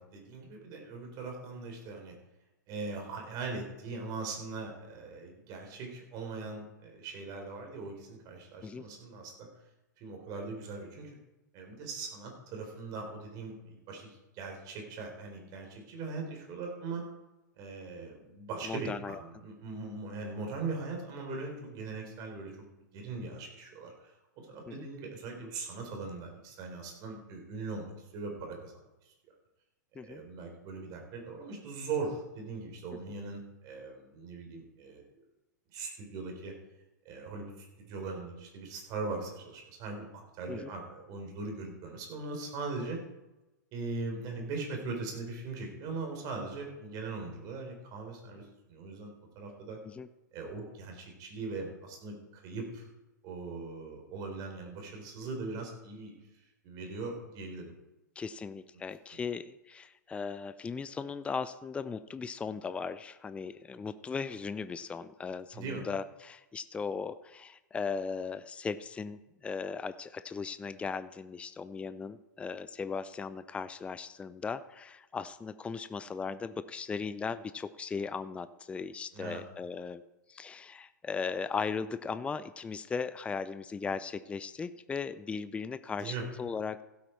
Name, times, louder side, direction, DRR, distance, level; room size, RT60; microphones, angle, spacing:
voice 1, 0.0-2.2 2.7-9.5 10.0-11.1 11.5-17.0 17.6-22.5 22.9-28.8 30.0-35.0 35.7-36.5 37.0-43.0 43.7-49.8 50.3-52.9 53.2-56.1 56.6-57.7 65.5-65.8 79.1-79.4 86.0-86.2, right 3 dB, 40° right, 2 dB, 4.0 m, -40 dB
voice 2, 18.6-19.2 24.7-24.9 29.9-30.2 32.9-33.0 40.5-40.7 49.8-50.1 58.2-80.0 80.3-86.8, left 5 dB, 10° left, 14 dB, 0.5 m, -37 dB
16.0 x 8.6 x 4.6 m, 1.0 s
hypercardioid pair, 105°, 10 cm